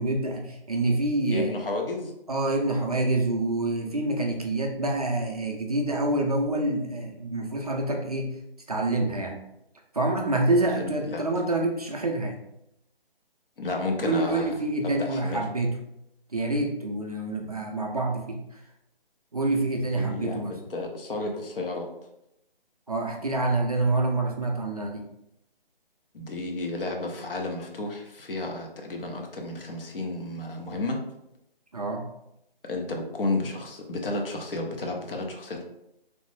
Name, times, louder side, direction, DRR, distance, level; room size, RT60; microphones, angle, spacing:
voice 1, 0.0-1.5 2.3-8.3 8.7-9.4 9.9-12.4 14.0-15.7 16.3-18.6 19.3-20.6 22.9-25.0 31.7-32.0, right 2 dB, 40° right, 0 dB, 0.4 m, -27 dB
voice 2, 1.3-2.1 10.5-11.3 13.6-15.4 20.0-21.9 26.1-31.0 32.7-35.6, left 2 dB, 65° left, 2 dB, 0.7 m, -32 dB
3.2 x 2.0 x 3.1 m, 0.83 s
hypercardioid pair, 165°, 30 cm